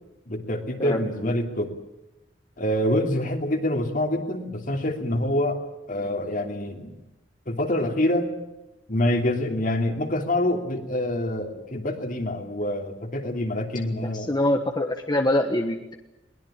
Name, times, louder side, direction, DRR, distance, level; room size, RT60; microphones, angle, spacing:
voice 1, 0.3-1.7 2.6-5.6 5.9-7.0 7.5-8.3 8.9-14.3, left 1 dB, 50° left, 5 dB, 3.0 m, -26 dB
voice 2, 0.8-1.3 14.1-15.9, left 1 dB, 25° left, 4 dB, 1.4 m, -24 dB
22.0 x 20.0 x 8.6 m, 0.97 s
head